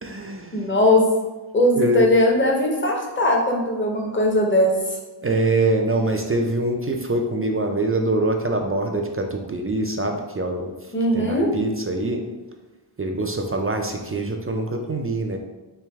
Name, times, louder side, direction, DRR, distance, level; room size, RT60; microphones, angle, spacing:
voice 1, 0.0-0.7 1.7-2.1 5.2-10.7 11.1-12.2 13.0-15.4, right 2 dB, 30° right, 3 dB, 0.4 m, -24 dB
voice 2, 0.5-1.1 1.5-4.7 10.9-11.5, left 1 dB, 25° left, -1 dB, 0.8 m, -19 dB
3.3 x 3.2 x 3.5 m, 1.1 s
wide cardioid pair, 60°, 48 cm